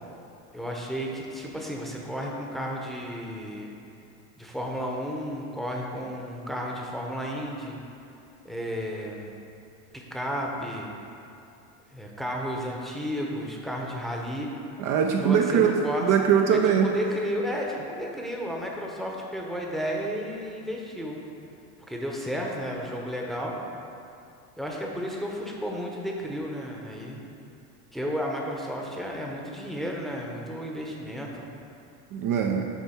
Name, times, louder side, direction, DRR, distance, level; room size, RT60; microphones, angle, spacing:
voice 1, 0.5-3.7 4.4-7.8 8.4-9.3 9.9-10.9 11.9-14.5 15.1-16.1 16.5-21.2 21.9-23.6 24.6-27.2 27.9-31.5, equal, ahead, -1 dB, 0.8 m, -33 dB
voice 2, 14.8-16.9 32.1-32.7, right 7 dB, 45° right, 2 dB, 0.6 m, -22 dB
7.1 x 4.4 x 4.3 m, 2.7 s
hypercardioid pair, 90°, 45 cm